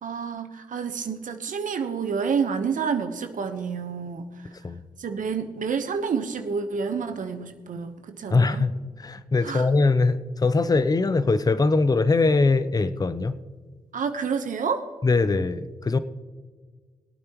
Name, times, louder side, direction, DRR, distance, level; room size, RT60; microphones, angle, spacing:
voice 1, 0.0-4.3 5.0-8.6 9.4-9.7 13.9-14.9, right 6 dB, 70° right, 6 dB, 1.1 m, -29 dB
voice 2, 8.3-8.7 9.0-13.4 15.0-16.0, left 3 dB, 25° left, 13 dB, 0.7 m, -22 dB
22.0 x 8.7 x 3.1 m, 1.5 s
cardioid pair, 75°, 14 cm